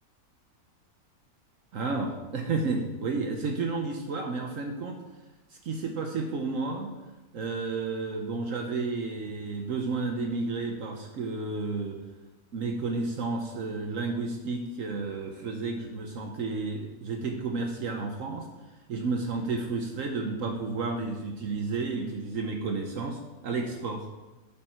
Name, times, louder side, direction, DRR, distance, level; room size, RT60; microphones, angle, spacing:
voice 1, 1.7-5.0 5.6-7.0 7.3-12.0 12.5-18.5 18.9-24.1, right 3 dB, 65° right, 3 dB, 1.2 m, -31 dB
12.0 x 5.5 x 4.4 m, 1.1 s
omnidirectional pair, 1.6 m